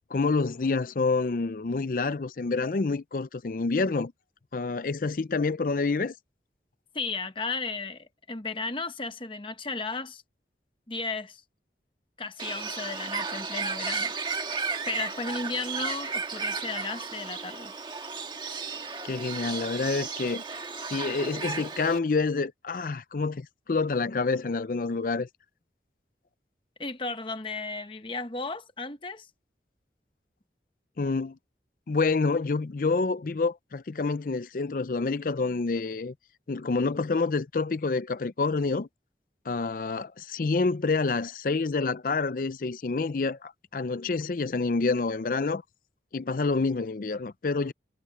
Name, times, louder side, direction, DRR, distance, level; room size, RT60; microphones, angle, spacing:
voice 1, 0.1-4.1 4.5-6.1 19.0-20.4 20.9-25.3 31.0-31.4 31.9-36.1 36.5-38.9 39.5-45.6 46.1-47.7, left 4 dB, 50° left, 0.5 m, -28 dB
voice 2, 6.9-10.2 10.9-11.4 12.2-14.1 14.9-17.7 26.8-29.3, left 3 dB, 30° left, 1.1 m, -34 dB
Bird, 12.4-22.0, right 4 dB, 25° right, 1.6 m, -34 dB
head